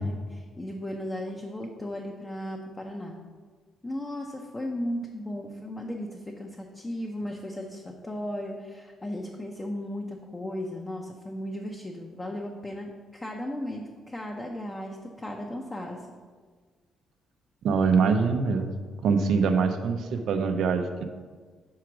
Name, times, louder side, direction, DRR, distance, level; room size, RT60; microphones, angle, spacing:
voice 1, 0.0-3.2 3.8-16.0, left 1 dB, 20° left, 0 dB, 0.7 m, -36 dB
voice 2, 17.6-18.7 19.0-21.1, right 5 dB, 75° right, 7 dB, 0.6 m, -24 dB
4.9 x 4.7 x 5.9 m, 1.5 s
cardioid pair, 90°, 0 cm